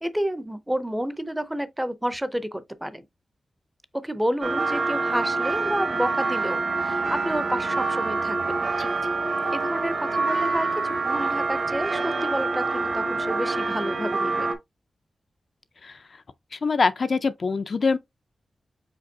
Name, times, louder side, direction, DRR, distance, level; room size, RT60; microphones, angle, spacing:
voice 1, 0.0-3.0 3.9-8.7 9.5-14.5, equal, 5° right, 0.5 m, -30 dB
sound 1, 4.4-14.5, right 3 dB, 55° right, 1.0 m, -26 dB
voice 2, 16.5-18.0, left 4 dB, 50° left, 0.3 m, -24 dB
5.1 x 3.9 x 2.6 m
wide cardioid pair, 145°, 0 cm